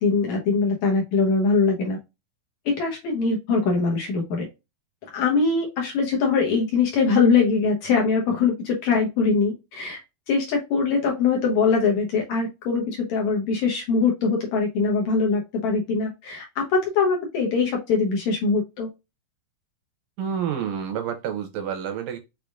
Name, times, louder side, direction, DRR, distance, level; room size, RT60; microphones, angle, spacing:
voice 1, 0.0-2.0 2.7-4.5 5.1-10.0 10.3-18.9, left 4 dB, 70° left, 1.8 m, -22 dB
voice 2, 20.2-22.2, right 8 dB, 80° right, 2.0 m, -29 dB
6.3 x 3.5 x 2.4 m
omnidirectional pair, 4.4 m